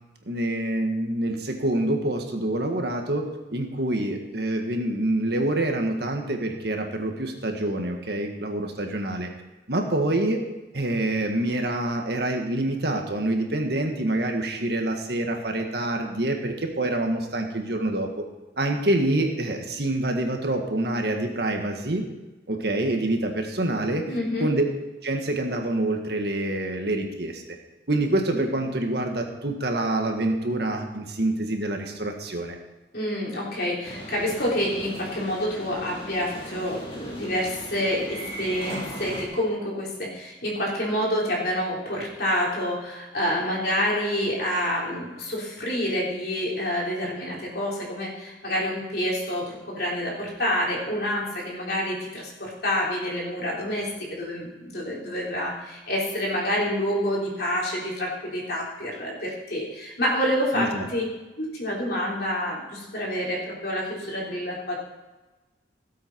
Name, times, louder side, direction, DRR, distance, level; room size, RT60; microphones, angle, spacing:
voice 1, 0.3-9.3 9.7-10.4 10.7-18.2 18.6-22.0 22.5-24.0 24.4-24.6 25.0-27.4 27.9-32.6 60.5-60.8, right 1 dB, 55° right, 3 dB, 1.7 m, -26 dB
voice 2, 24.1-24.5 32.9-61.0 61.4-64.8, equal, 55° left, -4 dB, 3.6 m, -28 dB
sound 1, 33.8-39.2, equal, 30° left, 2.4 m, -38 dB
17.0 x 8.1 x 4.6 m, 1.1 s
head